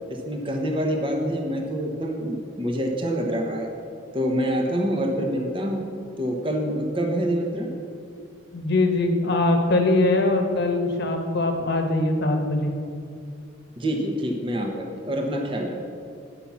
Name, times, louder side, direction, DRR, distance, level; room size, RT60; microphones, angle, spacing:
voice 1, 0.1-3.7 4.1-5.8 6.2-7.7 13.8-15.8, equal, 25° right, 2 dB, 0.9 m, -26 dB
voice 2, 8.5-12.7, left 2 dB, 55° left, 5 dB, 1.0 m, -22 dB
9.0 x 5.6 x 7.2 m, 2.3 s
head